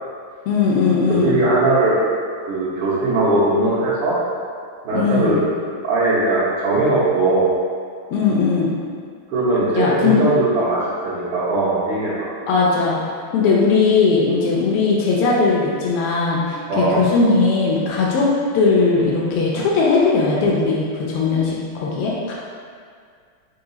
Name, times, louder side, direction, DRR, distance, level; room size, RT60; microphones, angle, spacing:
voice 1, 0.5-1.4 4.9-5.4 8.1-8.7 9.7-10.2 12.5-13.0 13.3-18.3 18.5-22.3, left 4 dB, 80° left, -5 dB, 1.5 m, -18 dB
voice 2, 1.1-2.0 2.5-4.2 4.8-5.5 5.8-7.5 9.3-12.3 16.7-17.1, right 2 dB, 80° right, -13 dB, 1.9 m, -19 dB
4.8 x 2.3 x 3.8 m, 2.1 s
omnidirectional pair, 2.4 m